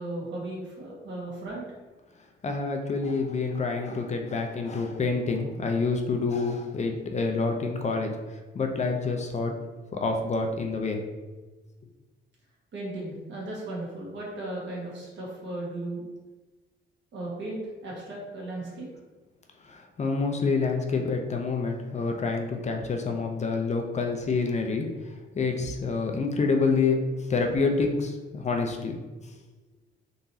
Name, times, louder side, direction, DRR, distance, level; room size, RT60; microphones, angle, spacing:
voice 1, 0.0-1.6 12.7-16.0 17.1-18.9, right 2 dB, 65° right, -4 dB, 1.4 m, -36 dB
voice 2, 2.4-9.5 9.9-11.0 19.6-29.0, left 4 dB, 35° left, 3 dB, 0.5 m, -27 dB
3.8 x 2.9 x 2.7 m, 1.2 s
cardioid pair, 90°, 20 cm